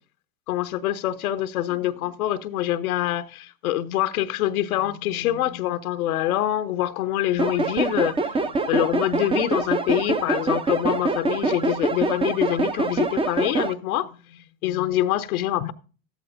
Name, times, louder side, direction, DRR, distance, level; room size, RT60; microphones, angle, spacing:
voice 1, 0.5-15.7, left 13 dB, 75° left, 0.8 m, -25 dB
sound 1, 7.4-13.7, right 3 dB, 15° right, 0.6 m, -25 dB
14.0 x 12.5 x 2.6 m
hypercardioid pair, 85°, 44 cm